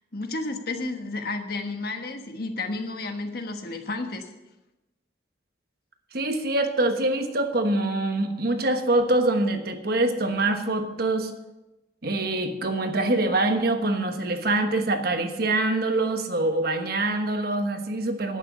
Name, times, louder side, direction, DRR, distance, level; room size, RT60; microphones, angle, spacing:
voice 1, 0.1-4.3, left 2 dB, 55° left, 6 dB, 1.3 m, -32 dB
voice 2, 6.1-11.3 12.0-18.4, right 2 dB, 55° right, 6 dB, 1.2 m, -24 dB
10.5 x 8.8 x 7.0 m, 1.0 s
head